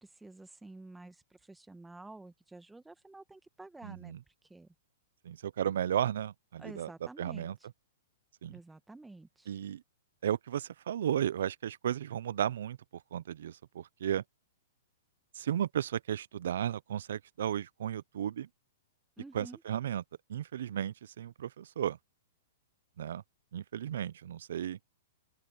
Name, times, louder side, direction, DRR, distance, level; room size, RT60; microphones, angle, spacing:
voice 1, 0.2-4.1 4.5-4.7 6.6-7.5 8.5-9.5 19.2-19.6, right 2 dB, 5° right, 1.7 m, -50 dB
voice 2, 3.8-4.2 5.2-6.9 7.2-7.6 8.4-8.6 9.5-9.8 10.2-12.8 13.1-14.2 15.4-18.5 19.3-20.0 20.3-22.0 23.0-23.2 23.5-24.8, right 10 dB, 70° right, 0.6 m, -34 dB
open air
hypercardioid pair, 145°, 0 cm